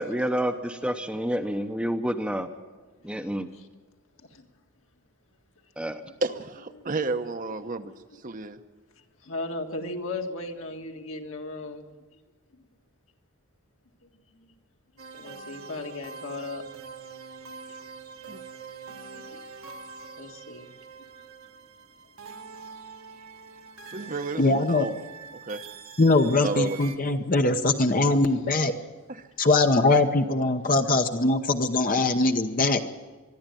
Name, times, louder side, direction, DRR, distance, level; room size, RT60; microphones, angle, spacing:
voice 1, 0.0-2.5 3.0-3.5 5.8-6.0, equal, 5° right, 6 dB, 0.8 m, -28 dB
voice 2, 6.2-7.9 8.2-8.6 18.3-18.4 23.9-25.0 25.3-25.6 26.4-26.8 29.1-29.3, right 3 dB, 35° right, 8 dB, 0.9 m, -31 dB
voice 3, 9.2-11.9 12.5-12.7 14.0-14.1 14.4-14.5 15.1-16.6 19.1-19.4 20.2-20.7 27.8-28.0 28.8-28.9 30.9-31.0, left 2 dB, 65° left, 3 dB, 2.0 m, -36 dB
sound 1, 15.0-27.0, right 5 dB, 75° right, 1.6 m, -44 dB
voice 4, 24.4-24.9 26.0-28.7 29.4-32.8, left 2 dB, 40° left, 6 dB, 0.8 m, -22 dB
24.0 x 12.0 x 9.1 m, 1.4 s
head